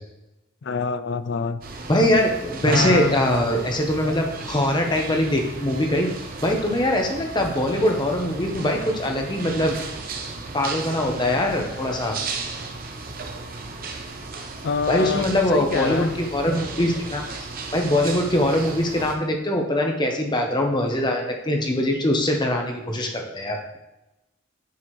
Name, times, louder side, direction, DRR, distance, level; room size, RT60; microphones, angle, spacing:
voice 1, 0.6-1.6 2.7-3.2 14.6-16.1, left 5 dB, 60° left, 13 dB, 0.4 m, -26 dB
sound 1, 1.6-19.2, right 3 dB, 45° right, 0.8 m, -35 dB
voice 2, 1.9-6.1 6.4-9.8 10.5-12.2 14.9-17.3 17.7-23.6, left 1 dB, 20° left, 2 dB, 0.9 m, -22 dB
9.4 x 4.8 x 3.1 m, 0.97 s
head